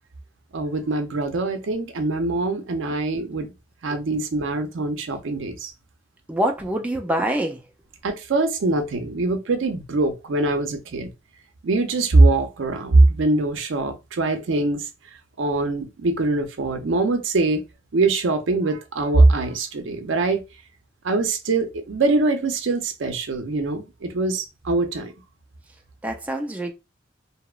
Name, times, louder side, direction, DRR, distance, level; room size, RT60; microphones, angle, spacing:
voice 1, 0.5-3.5 3.8-5.7 8.0-11.1 11.6-14.9 15.4-17.6 17.9-20.5 21.0-25.1, right 2 dB, 80° right, 0.5 m, -22 dB
voice 2, 6.3-7.6 26.0-26.7, right 1 dB, 10° right, 0.3 m, -25 dB
2.8 x 2.0 x 2.3 m
head